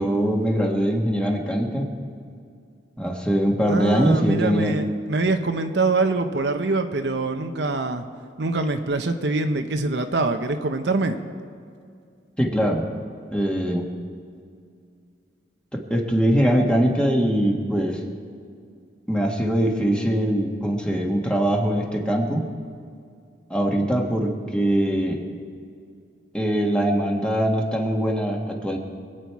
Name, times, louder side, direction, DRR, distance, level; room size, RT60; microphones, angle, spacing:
voice 1, 0.0-1.9 3.0-4.7 12.4-12.9 13.3-13.9 15.7-18.0 19.1-22.5 23.5-25.2 26.3-28.8, equal, 5° left, 0 dB, 1.6 m, -22 dB
voice 2, 3.6-8.0 8.4-11.2, right 3 dB, 65° right, 6 dB, 0.9 m, -24 dB
25.0 x 9.0 x 4.7 m, 2.3 s
head